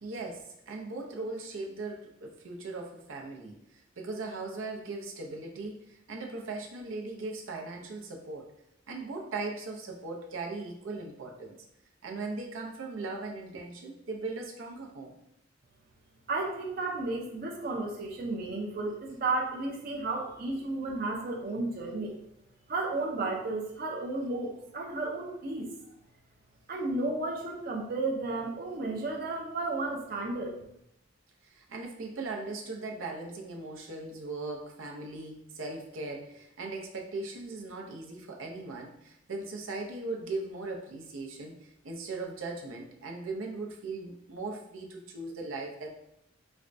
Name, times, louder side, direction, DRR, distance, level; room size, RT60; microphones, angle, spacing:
voice 1, 0.0-8.5 8.9-11.6 12.0-15.1 31.4-46.0, right 3 dB, 90° right, 1 dB, 0.6 m, -39 dB
voice 2, 16.3-22.2 22.7-25.7 26.7-30.6, right 2 dB, 45° right, -1 dB, 0.4 m, -33 dB
4.2 x 2.2 x 2.5 m, 0.78 s
head